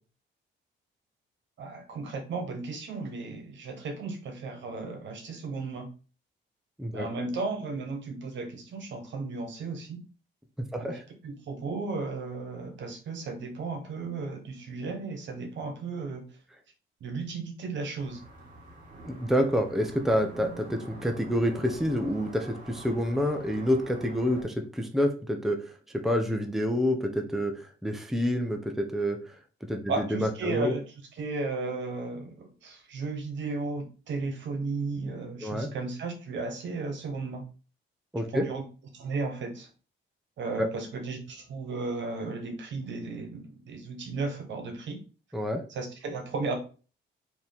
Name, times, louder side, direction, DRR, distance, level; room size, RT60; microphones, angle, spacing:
voice 1, 1.6-5.9 6.9-10.0 10.7-10.9 11.2-16.2 17.0-18.2 29.9-30.8 31.2-37.4 38.3-38.6 38.9-39.7 40.4-45.0 45.7-46.6, right 3 dB, 70° right, 5 dB, 1.3 m, -34 dB
voice 2, 10.7-11.0 19.1-25.6 26.0-29.2 29.6-30.7 35.4-35.7 38.1-38.4 40.6-40.7 45.3-45.6, equal, ahead, 4 dB, 0.7 m, -28 dB
sound 1, 18.0-24.4, right 2 dB, 45° right, 2.5 m, -46 dB
4.2 x 3.0 x 3.6 m, 0.35 s
cardioid pair, 90°, 20 cm